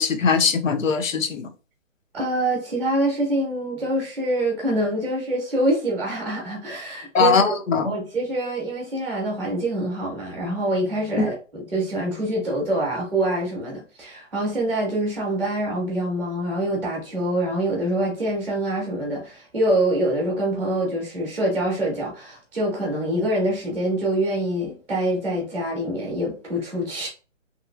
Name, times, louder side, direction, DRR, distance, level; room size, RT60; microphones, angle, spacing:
voice 1, 0.0-1.5 7.1-7.9 11.2-11.3, left 5 dB, 80° left, 0.8 m, -20 dB
voice 2, 2.1-7.6 7.8-27.1, right 1 dB, 5° right, 0.7 m, -25 dB
3.0 x 2.9 x 2.3 m
hypercardioid pair, 165°, 39 cm